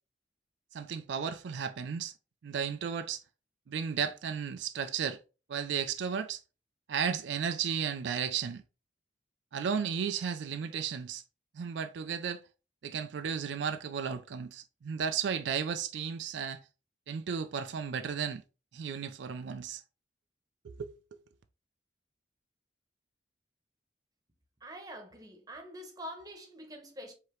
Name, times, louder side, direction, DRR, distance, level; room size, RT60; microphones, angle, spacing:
voice 1, 0.7-2.1 2.4-3.2 3.7-5.2 5.5-6.4 6.9-8.6 9.5-11.2 11.5-12.4 12.8-16.6 17.1-18.4 18.7-19.8 20.6-20.9, right 7 dB, 80° right, 0.4 m, -34 dB
voice 2, 24.6-27.1, equal, 20° right, 0.9 m, -45 dB
4.7 x 2.9 x 3.0 m
head